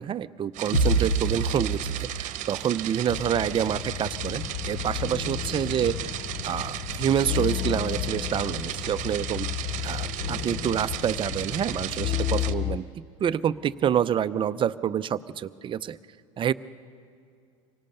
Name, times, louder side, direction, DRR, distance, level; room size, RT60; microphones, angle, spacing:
voice 1, 0.0-6.1 6.4-9.5 9.8-12.8 13.2-16.0 16.4-16.5, right 9 dB, 30° right, 15 dB, 0.6 m, -27 dB
sound 1, 0.5-12.5, right 13 dB, 50° right, 1.0 m, -35 dB
sound 2, 0.7-2.5, right 2 dB, 80° left, 4.5 m, -25 dB
sound 3, 3.1-12.8, left 12 dB, 45° left, 0.8 m, -32 dB
25.5 x 18.0 x 6.7 m, 2.3 s
hypercardioid pair, 95°, 16 cm